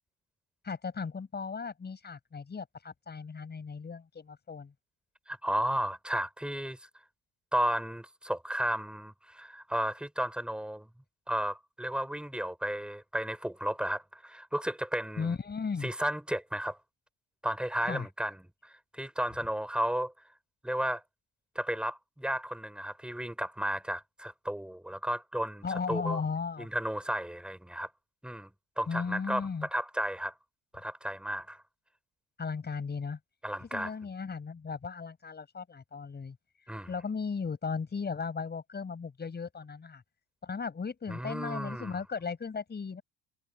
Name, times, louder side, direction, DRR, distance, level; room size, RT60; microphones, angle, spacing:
voice 1, 0.6-4.7 15.2-15.9 17.8-18.1 25.6-26.7 28.9-29.7 32.4-33.2 33.6-36.4 36.9-40.0 40.4-43.0, left 5 dB, 25° left, 6.2 m, -36 dB
voice 2, 5.3-6.8 7.5-10.9 11.3-15.4 15.8-16.8 17.4-18.4 18.6-20.1 20.6-21.0 21.5-26.2 26.6-27.9 28.2-30.3 30.7-31.6 33.4-33.9 36.7-36.9 41.1-42.0, right 1 dB, ahead, 4.2 m, -33 dB
cardioid pair, 115°, 40 cm